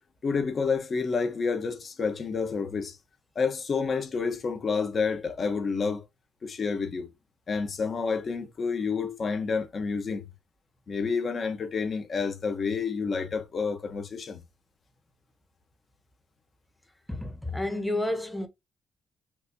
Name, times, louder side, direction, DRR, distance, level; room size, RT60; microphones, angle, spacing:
voice 1, 0.2-3.0 3.3-6.0 6.4-7.1 7.5-10.2 10.9-14.4, left 5 dB, 45° left, 1.2 m, -29 dB
voice 2, 17.1-18.5, left 1 dB, 5° left, 1.1 m, -30 dB
5.9 x 2.8 x 2.9 m
cardioid pair, 90°, 0 cm